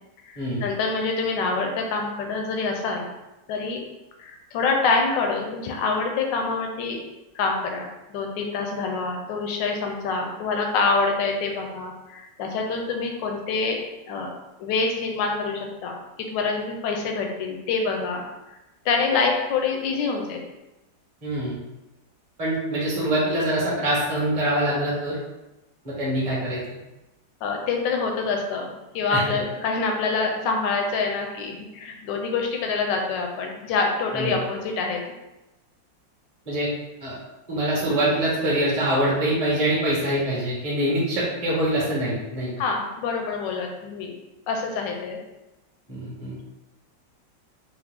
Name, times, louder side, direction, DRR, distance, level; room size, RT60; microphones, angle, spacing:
voice 1, 0.3-3.1 3.5-3.8 4.2-7.0 7.3-13.8 14.1-14.3 14.6-18.2 18.8-20.5 27.4-35.0 42.6-44.1 44.5-45.2, left 4 dB, 80° left, 2 dB, 1.3 m, -26 dB
voice 2, 21.2-21.6 22.4-25.2 25.8-26.6 29.1-29.2 34.1-34.3 36.5-36.7 37.0-37.2 37.5-42.5 45.9-46.4, right 1 dB, 25° right, -6 dB, 1.0 m, -24 dB
4.1 x 2.3 x 3.4 m, 1.0 s
omnidirectional pair, 2.0 m